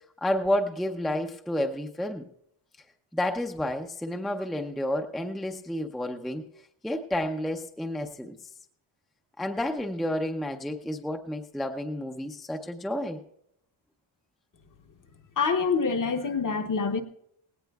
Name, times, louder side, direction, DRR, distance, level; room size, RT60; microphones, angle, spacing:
voice 1, 0.2-2.2 3.1-6.4 6.8-8.4 9.4-13.2, left 1 dB, ahead, 4 dB, 0.5 m, -30 dB
voice 2, 15.4-17.0, left 5 dB, 40° left, 7 dB, 0.8 m, -26 dB
18.5 x 17.5 x 2.3 m, 0.73 s
wide cardioid pair, 180°, 50 cm